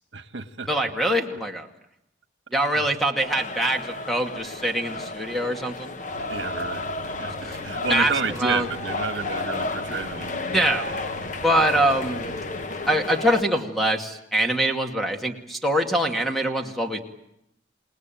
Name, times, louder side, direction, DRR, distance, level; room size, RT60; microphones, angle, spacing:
voice 1, 0.1-0.7 2.7-2.9 6.3-10.6, right 4 dB, 80° right, 10 dB, 1.5 m, -30 dB
voice 2, 0.7-1.7 2.5-5.9 7.8-8.1 8.4-8.7 10.5-10.9 11.4-12.3 12.9-17.0, right 1 dB, ahead, 3 dB, 2.2 m, -24 dB
sound 1, 3.2-13.4, left 3 dB, 45° left, 1.0 m, -32 dB
sound 2, 6.1-12.6, right 1 dB, 15° right, 2.0 m, -44 dB
28.5 x 19.0 x 9.2 m, 0.82 s
head